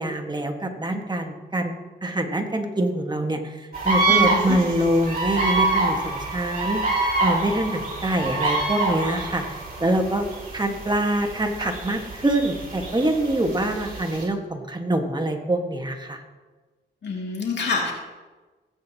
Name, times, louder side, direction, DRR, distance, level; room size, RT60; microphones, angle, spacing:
voice 1, 0.0-1.7 2.0-10.3 10.5-16.2, right 1 dB, 20° right, 4 dB, 1.6 m, -25 dB
sound 1, 3.7-14.2, right 2 dB, 50° right, 3.7 m, -26 dB
voice 2, 4.1-4.5 17.0-17.9, left 4 dB, 60° left, -1 dB, 2.4 m, -27 dB
16.5 x 8.7 x 2.9 m, 1.3 s
cardioid pair, 65°, 20 cm